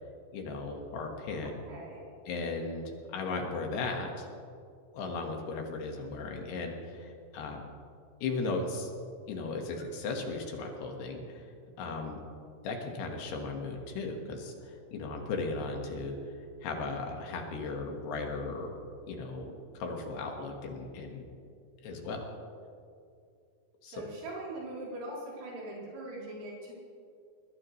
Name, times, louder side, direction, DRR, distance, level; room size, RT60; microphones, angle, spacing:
voice 1, 0.3-1.5 2.3-4.3 4.9-7.6 8.2-8.9 9.3-11.5 11.8-12.2 12.6-16.2 16.6-18.7 19.1-21.3 21.8-22.2 23.8-24.0, left 3 dB, 65° left, 2 dB, 3.2 m, -36 dB
voice 2, 1.4-2.0 22.2-22.3 23.9-26.7, right 1 dB, 70° right, -6 dB, 5.7 m, -41 dB
22.0 x 19.5 x 3.2 m, 2.4 s
omnidirectional pair, 5.8 m